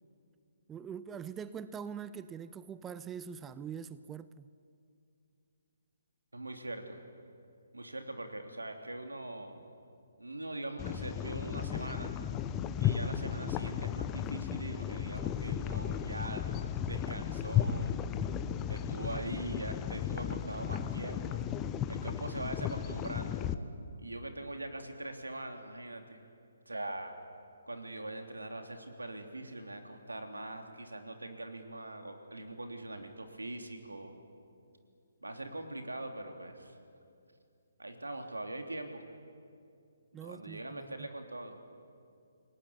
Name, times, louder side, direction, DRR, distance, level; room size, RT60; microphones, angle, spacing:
voice 1, 0.7-4.5 40.1-41.1, right 7 dB, 15° right, 0.6 m, -43 dB
voice 2, 6.3-7.0 7.7-9.6 10.2-12.1 12.8-16.4 16.8-18.1 18.7-21.4 21.9-23.4 24.0-26.2 26.6-27.2 27.7-34.1 35.2-36.7 37.8-39.0 40.1-41.6, right 2 dB, 90° right, 3.2 m, -42 dB
sound 1, 10.8-23.5, left 9 dB, 20° left, 1.1 m, -34 dB
28.0 x 18.0 x 9.9 m
figure-of-eight pair, 140°, 0 cm